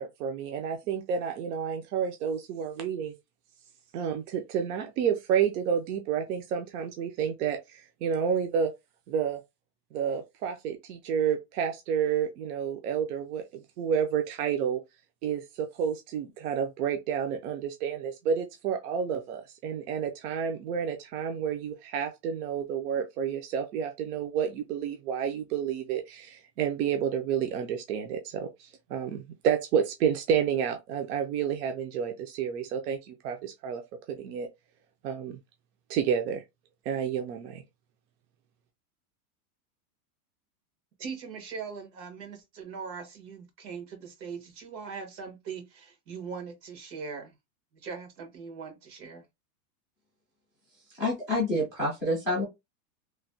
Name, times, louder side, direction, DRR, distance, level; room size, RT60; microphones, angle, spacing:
voice 1, 0.0-3.1 3.9-8.7 9.1-9.4 9.9-14.8 15.2-33.8 34.1-34.5 35.0-35.4 35.9-36.4 36.9-37.6, right 7 dB, 65° right, 0.6 m, -30 dB
voice 2, 41.0-47.3 47.8-49.2, right 5 dB, 90° right, 1.5 m, -40 dB
voice 3, 51.0-52.4, left 1 dB, 10° right, 0.3 m, -27 dB
3.2 x 2.1 x 2.6 m
supercardioid pair, 165°, 50 cm